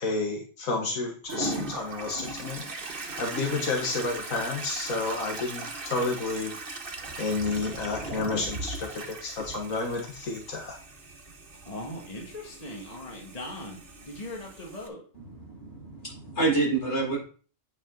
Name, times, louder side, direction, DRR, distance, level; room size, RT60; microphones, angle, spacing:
voice 1, 0.0-2.6 3.2-6.6 7.2-10.8, left 3 dB, 85° left, 1 dB, 1.7 m, -30 dB
Toilet flush, 1.3-14.9, right 2 dB, 45° right, 1.3 m, -39 dB
voice 2, 11.6-13.8 14.1-15.0, left 1 dB, 30° left, -1 dB, 1.7 m, -39 dB
voice 3, 15.1-17.2, right 3 dB, 55° left, -3 dB, 4.7 m, -28 dB
8.9 x 5.6 x 3.8 m, 0.40 s
omnidirectional pair, 1.4 m